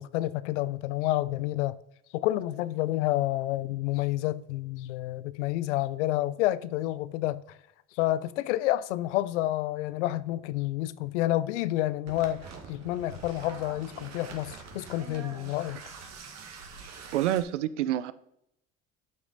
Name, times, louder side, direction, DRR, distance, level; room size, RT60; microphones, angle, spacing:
voice 1, 0.0-1.8 2.1-7.4 8.0-15.8, left 15 dB, 80° left, 0.6 m, -29 dB
sound 1, 12.1-17.4, right 5 dB, 50° right, 1.9 m, -45 dB
voice 2, 17.1-18.1, right 12 dB, 85° right, 0.6 m, -27 dB
11.5 x 6.1 x 4.0 m
hypercardioid pair, 65°, 35 cm